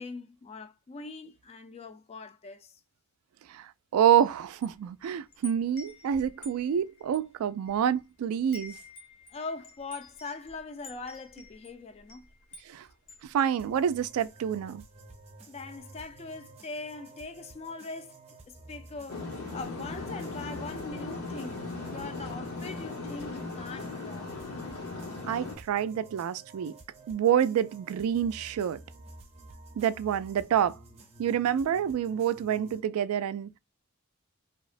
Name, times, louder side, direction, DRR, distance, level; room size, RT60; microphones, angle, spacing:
voice 1, 0.0-2.8 9.3-12.3 15.5-18.2 18.5-19.3 19.5-24.3, left 3 dB, 30° left, 0.3 m, -41 dB
voice 2, 3.5-8.7 12.7-12.8 13.3-14.8 25.2-26.7 27.1-28.8 29.8-30.8 31.2-33.5, right 9 dB, 90° right, 0.3 m, -27 dB
Wind chime, 4.0-8.1 8.4-14.3, left 2 dB, 55° left, 0.7 m, -51 dB
sound 1, 13.6-32.8, right 2 dB, 30° right, 0.6 m, -51 dB
sound 2, 19.1-25.6, left 3 dB, 85° left, 0.9 m, -38 dB
2.8 x 2.0 x 2.4 m
head